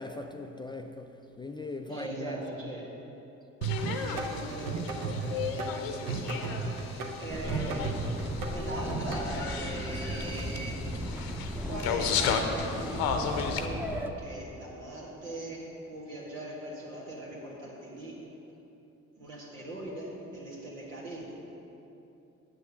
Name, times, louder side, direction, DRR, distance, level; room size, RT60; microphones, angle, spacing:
voice 1, 0.0-2.7 5.1-5.3, left 2 dB, 10° left, 0.3 m, -41 dB
voice 2, 1.9-2.8 3.8-10.7 11.6-13.8 14.2-18.1 19.2-21.3, right 1 dB, 80° right, 1.8 m, -40 dB
sound 1, 3.6-13.7, left 6 dB, 65° left, 0.8 m, -35 dB
sound 2, 3.6-9.2, right 4 dB, 60° right, 1.0 m, -34 dB
sound 3, 7.3-14.1, right 1 dB, 5° right, 0.8 m, -36 dB
7.9 x 6.5 x 6.7 m
figure-of-eight pair, 45°, 40 cm